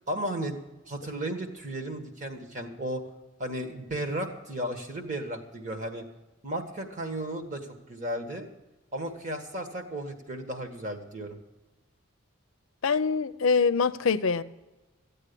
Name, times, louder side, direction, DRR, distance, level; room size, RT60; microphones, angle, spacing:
voice 1, 0.1-0.5 0.9-3.0 3.4-6.0 6.4-8.5 8.9-11.4, right 1 dB, 35° right, 1.6 m, -34 dB
voice 2, 12.8-14.4, left 5 dB, 75° left, 0.6 m, -24 dB
14.0 x 8.8 x 6.9 m
head